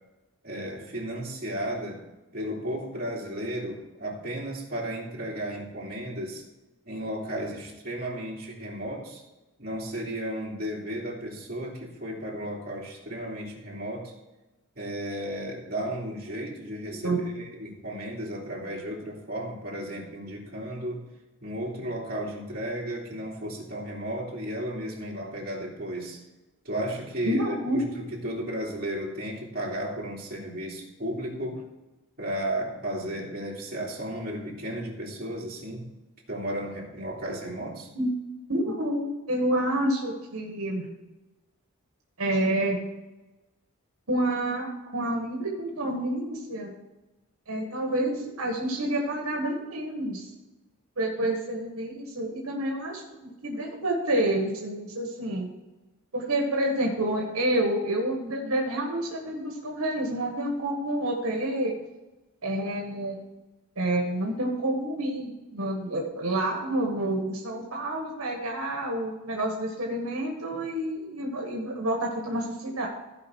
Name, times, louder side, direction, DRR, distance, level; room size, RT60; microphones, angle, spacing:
voice 1, 0.4-2.0 2.3-6.4 6.8-9.2 9.6-14.1 14.8-21.0 21.4-26.2 26.6-31.6 32.2-35.9 36.3-37.9, right 1 dB, 40° right, -4 dB, 2.9 m, -34 dB
voice 2, 27.2-27.8 37.9-38.1 38.5-40.9 42.2-42.8 44.1-46.7 47.5-50.3 51.0-55.5 56.1-61.7 62.4-63.2 63.8-72.9, right 1 dB, 80° right, 0 dB, 1.7 m, -28 dB
15.5 x 5.2 x 4.7 m, 1.1 s
head